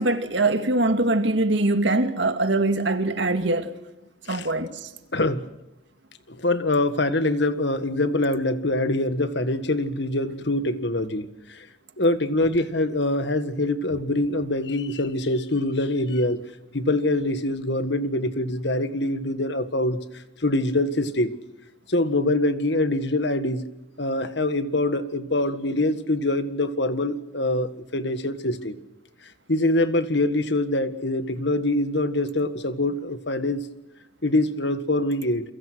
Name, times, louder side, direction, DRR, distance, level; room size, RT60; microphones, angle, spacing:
voice 1, 0.0-3.7 4.3-4.8, right 2 dB, 65° right, 2.1 m, -22 dB
voice 2, 5.1-5.4 6.3-11.7 12.0-16.4 16.7-20.0 20.4-21.3 21.9-23.6 24.0-28.8 29.5-33.7 34.2-35.4, left 2 dB, 60° left, 1.7 m, -24 dB
30.0 x 23.0 x 6.3 m
head